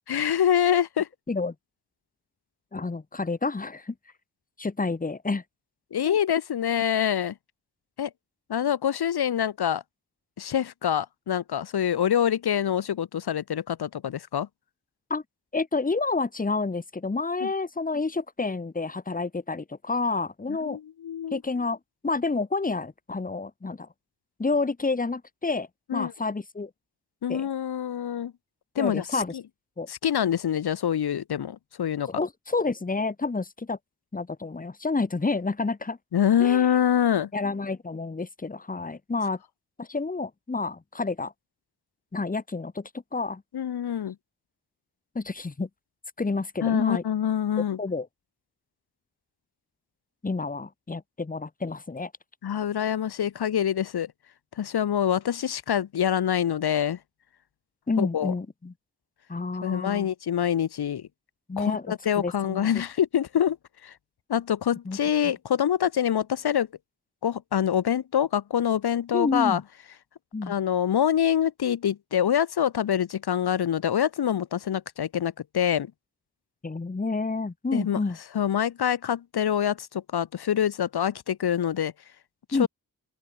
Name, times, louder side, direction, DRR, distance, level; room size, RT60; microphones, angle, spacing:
voice 1, 0.1-1.1 5.9-7.3 8.0-8.1 8.5-9.8 10.4-14.5 17.4-17.5 20.6-21.4 25.9-26.1 27.2-28.3 28.8-29.4 29.9-32.1 36.1-37.3 43.5-44.1 46.6-47.8 52.4-54.1 54.6-57.0 58.0-58.3 59.6-61.0 61.6-63.6 63.8-63.9 64.3-66.7 67.2-69.6 70.5-75.9 77.7-78.0 78.3-81.9 82.6-82.7, left 9 dB, 75° left, 1.0 m, -25 dB
voice 2, 2.7-3.9 4.6-5.4 6.0-6.2 15.1-15.2 15.5-20.8 21.3-21.8 22.0-23.9 24.4-26.7 27.3-27.5 28.8-29.4 29.8-29.9 32.1-33.8 34.1-36.0 36.4-36.7 37.3-39.4 39.8-41.3 42.1-43.4 45.1-45.7 46.2-47.0 47.6-48.1 50.2-52.1 57.9-58.7 59.3-60.1 61.5-62.8 64.8-65.0 69.1-69.6 70.3-70.5 76.6-78.2 82.5-82.7, left 3 dB, 20° left, 1.0 m, -29 dB
open air
cardioid pair, 50°, 39 cm